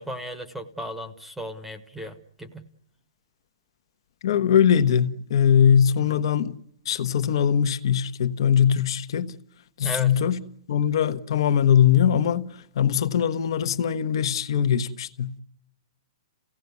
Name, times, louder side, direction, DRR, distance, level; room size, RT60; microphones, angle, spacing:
voice 1, 0.0-2.7 9.8-10.1, equal, 5° right, 1.2 m, -35 dB
voice 2, 4.2-6.6 6.8-9.3 9.8-10.4 10.7-15.3, left 8 dB, 60° left, 1.2 m, -21 dB
29.0 x 17.0 x 9.5 m
hypercardioid pair, 160°, 3 cm